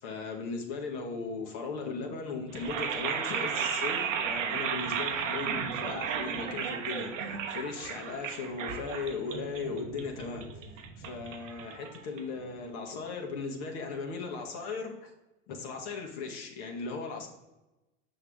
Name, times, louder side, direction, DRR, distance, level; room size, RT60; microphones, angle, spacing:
voice 1, 0.0-15.1 15.5-17.3, left 4 dB, 65° left, 2 dB, 1.4 m, -37 dB
sound 1, 2.5-12.6, right 7 dB, 85° right, 0.8 m, -34 dB
6.3 x 5.6 x 3.5 m, 1.0 s
hypercardioid pair, 80°, 36 cm